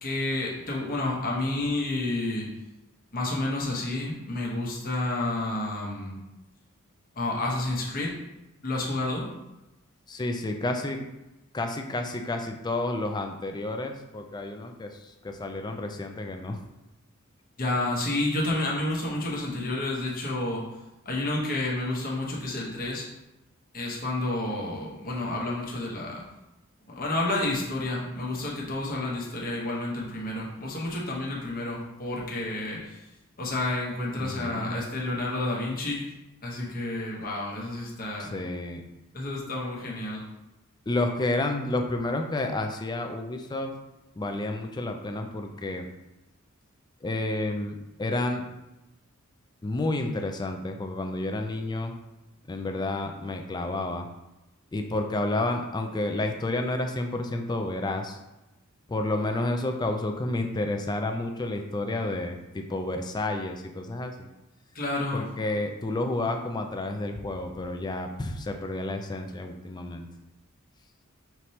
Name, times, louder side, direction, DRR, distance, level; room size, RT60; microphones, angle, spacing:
voice 1, 0.0-2.5 3.1-6.2 7.1-8.1 8.6-9.3 17.6-20.6 21.0-23.1 23.7-26.2 26.9-33.1 33.4-36.1 36.4-38.3 39.1-40.2 64.7-65.3, left 2 dB, 45° left, -3 dB, 1.0 m, -30 dB
voice 2, 10.1-11.0 11.5-16.6 34.2-34.8 38.2-38.8 40.9-43.7 44.2-45.9 47.0-48.4 49.6-52.0 52.5-54.1 54.7-58.2 58.9-64.3 65.1-70.1, left 2 dB, 20° left, 4 dB, 0.4 m, -30 dB
5.8 x 3.2 x 2.8 m, 0.98 s
head